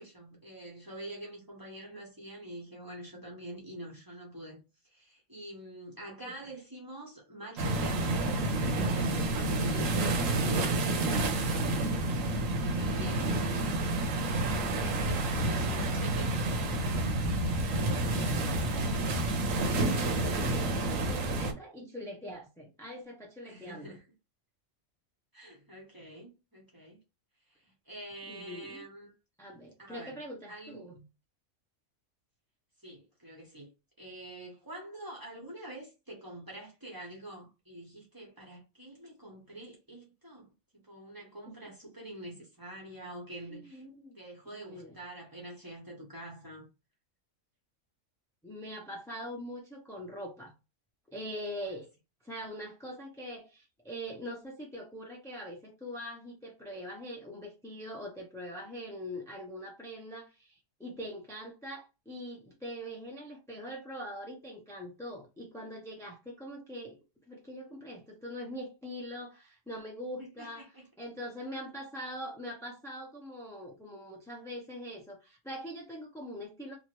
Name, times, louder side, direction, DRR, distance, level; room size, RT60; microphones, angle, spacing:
voice 1, 0.0-12.0 12.5-16.3 17.4-18.9 23.4-24.0 25.3-27.0 27.5-29.1 29.8-30.2 30.5-30.9 32.8-33.7 34.0-43.8 44.1-46.7 51.6-51.7 70.2-70.9, right 1 dB, 20° right, 0.8 m, -46 dB
sound 1, 7.6-21.5, right 2 dB, 80° right, 1.1 m, -29 dB
voice 2, 17.8-18.7 20.0-24.0 28.3-28.8 29.4-31.0 43.5-44.2 44.5-45.0 48.4-50.5 51.1-51.9 52.2-67.0 67.3-70.7 71.0-76.7, equal, 5° left, 0.4 m, -43 dB
2.9 x 2.5 x 3.0 m
omnidirectional pair, 1.4 m